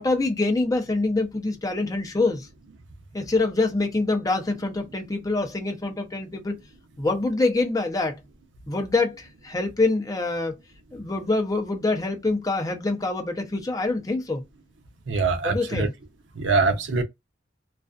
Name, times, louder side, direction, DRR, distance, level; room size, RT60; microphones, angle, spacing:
voice 1, 0.0-2.5 3.1-6.6 7.0-8.2 8.7-10.5 10.9-14.4 15.4-15.9, left 2 dB, 20° left, 0.5 m, -25 dB
voice 2, 15.1-15.9 16.4-17.0, right 4 dB, 80° right, 0.6 m, -23 dB
2.4 x 2.3 x 2.3 m
head